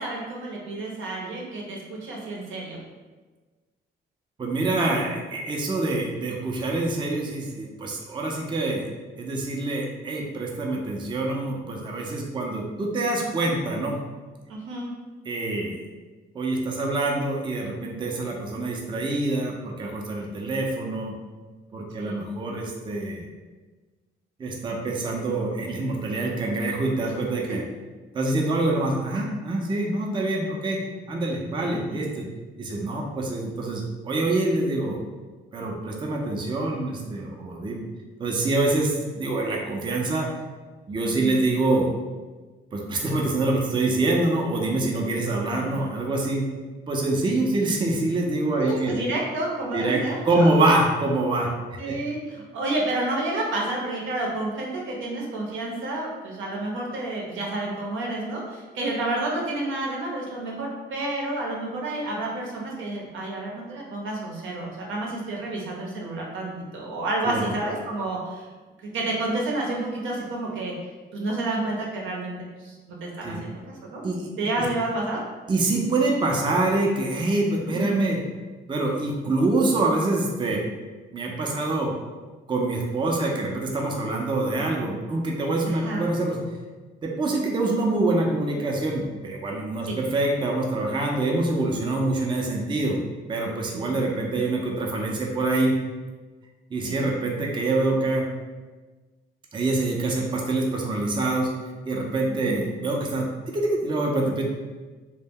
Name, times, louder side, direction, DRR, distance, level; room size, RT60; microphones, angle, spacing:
voice 1, 0.0-2.8 14.5-14.9 22.0-22.2 31.7-32.1 41.0-41.4 45.6-45.9 48.6-50.5 51.8-68.4 68.9-70.7 71.1-72.3 72.6-72.7 73.0-73.5 73.9-74.0 74.4-75.2 77.7-77.9 85.6-86.1 89.8-90.0 93.7-94.1 96.8-97.0 102.3-102.7, right 2 dB, 80° right, -2 dB, 0.7 m, -30 dB
voice 2, 4.4-8.8 9.2-14.0 15.3-15.8 16.3-21.2 21.7-23.3 24.4-27.6 28.1-30.8 31.1-32.3 32.6-35.0 35.5-37.8 38.2-40.3 40.9-41.9 42.7-46.5 46.9-48.9 49.7-51.5 51.9-52.0 67.2-67.5 73.2-73.4 74.0-74.3 75.5-78.2 78.7-80.6 81.1-81.9 82.5-86.4 87.0-93.0 93.3-95.8 96.7-98.3 99.5-101.5 101.8-103.3 103.5-104.4, right 2 dB, 25° right, -1 dB, 0.4 m, -25 dB
2.1 x 2.0 x 3.4 m, 1.3 s
cardioid pair, 90°, 20 cm